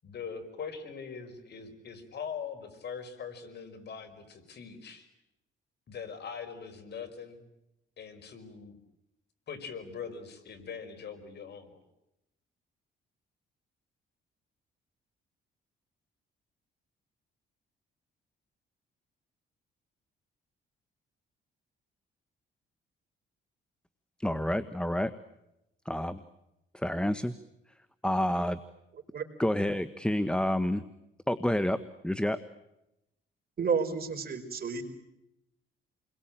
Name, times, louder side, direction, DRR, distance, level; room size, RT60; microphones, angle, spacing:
voice 1, 0.0-5.1 5.9-7.5 8.0-8.8 9.5-11.7, left 6 dB, 55° left, 7 dB, 5.5 m, -42 dB
voice 2, 24.2-25.1 25.8-26.2 26.7-27.3 28.0-28.6 29.4-30.8 31.3-32.4, left 1 dB, 5° left, 12 dB, 1.2 m, -29 dB
voice 3, 33.6-34.8, right 5 dB, 50° right, 7 dB, 4.8 m, -30 dB
30.0 x 22.0 x 9.0 m, 0.88 s
cardioid pair, 90°, 20 cm